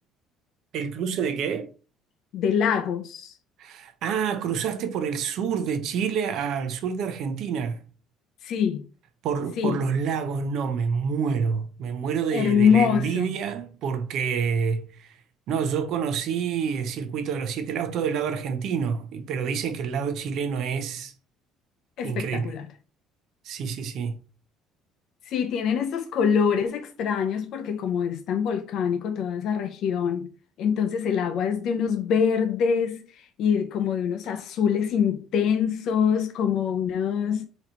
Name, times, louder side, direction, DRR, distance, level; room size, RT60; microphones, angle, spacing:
voice 1, 0.7-1.7 3.6-7.8 9.2-15.2 15.5-21.1 22.0-22.5 23.4-24.2, right 6 dB, 55° right, 0.7 m, -28 dB
voice 2, 2.3-3.3 8.4-8.8 9.6-9.8 12.3-13.3 22.0-22.7 25.3-30.3 30.6-33.0 33.4-37.5, left 7 dB, 55° left, 0.5 m, -24 dB
4.0 x 2.9 x 4.2 m
cardioid pair, 155°, 0 cm